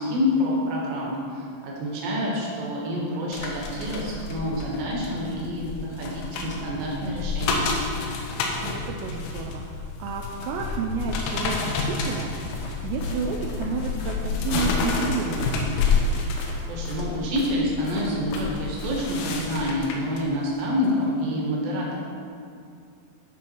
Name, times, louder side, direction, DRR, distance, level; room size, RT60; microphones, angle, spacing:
voice 1, 0.0-7.7 16.7-22.0, left 1 dB, 60° right, -3 dB, 2.8 m, -27 dB
sound 1, 3.3-20.2 20.7-20.9, left 4 dB, 85° left, 3.5 m, -29 dB
voice 2, 8.6-15.8, right 5 dB, 85° right, 1 dB, 2.5 m, -31 dB
sound 2, 12.5-19.3, left 3 dB, 70° left, 2.8 m, -41 dB
13.0 x 5.3 x 4.6 m, 2.4 s
omnidirectional pair, 5.6 m